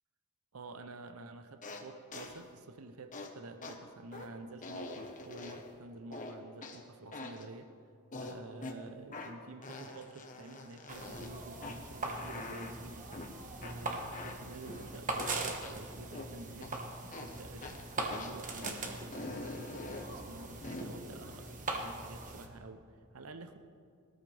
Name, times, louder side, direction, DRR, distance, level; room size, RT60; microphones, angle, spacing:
voice 1, 0.5-7.7 8.2-13.1 13.6-16.9 17.2-23.6, right 2 dB, 80° right, 9 dB, 0.8 m, -50 dB
sound 1, 1.6-1.8 2.1-2.4 3.1-3.3 3.6-3.8 4.1-4.3 4.6-5.7 6.1-6.8 7.1-7.4 8.1-8.8 9.1-9.3 9.6-11.3 11.6-11.8 12.1-12.7 13.1-13.3 13.6-13.7 14.1-15.3 15.6-15.7 16.1-16.3 16.6-16.8 17.1-17.3 17.6-17.8 18.1-18.3 18.6-18.7 19.1-20.1 20.6-20.8, left 2 dB, 35° left, 1.2 m, -44 dB
sound 2, 10.9-22.5, right 2 dB, 35° right, 1.4 m, -41 dB
20.0 x 14.0 x 3.5 m, 2.4 s
head